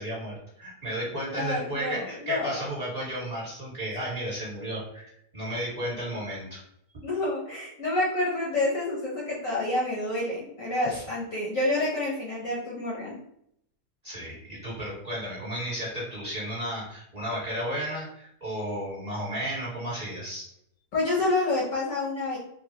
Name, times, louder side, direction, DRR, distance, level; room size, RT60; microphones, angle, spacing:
voice 1, 0.0-6.6 10.9-11.0 14.0-20.5, right 1 dB, 25° right, -8 dB, 1.3 m, -33 dB
voice 2, 1.3-2.6 7.0-13.1 20.9-22.4, left 2 dB, 60° left, -5 dB, 1.0 m, -28 dB
3.1 x 2.3 x 2.8 m, 0.74 s
omnidirectional pair, 1.8 m